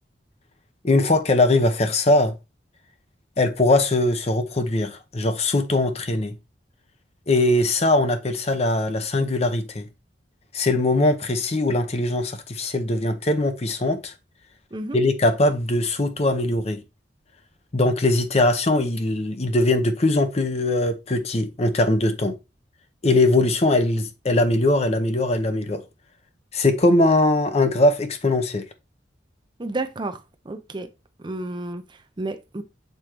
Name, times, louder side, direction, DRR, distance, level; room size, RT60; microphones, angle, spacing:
voice 1, 0.8-2.3 3.4-6.3 7.3-9.8 10.5-14.1 14.9-16.8 17.7-22.3 23.0-25.8 26.5-28.6, left 2 dB, 35° left, 0.7 m, -21 dB
voice 2, 29.6-30.9 31.2-32.6, right 2 dB, 25° right, 0.6 m, -31 dB
6.8 x 4.7 x 3.0 m
head